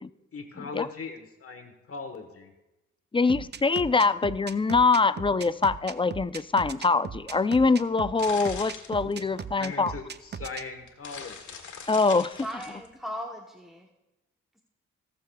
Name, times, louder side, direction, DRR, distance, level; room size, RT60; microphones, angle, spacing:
voice 1, 0.3-2.5 9.3-11.6, left 5 dB, 50° left, 1.2 m, -39 dB
voice 2, 3.1-9.9 11.9-12.4, left 4 dB, 20° left, 0.4 m, -24 dB
sound 1, 3.3-10.6, right 7 dB, 35° right, 0.5 m, -38 dB
sound 2, 7.8-9.5 10.3-10.4 10.8-12.9, left 6 dB, 75° left, 1.7 m, -42 dB
voice 3, 12.4-13.9, equal, ahead, 0.9 m, -38 dB
17.5 x 6.9 x 2.3 m
supercardioid pair, 55°, 30 cm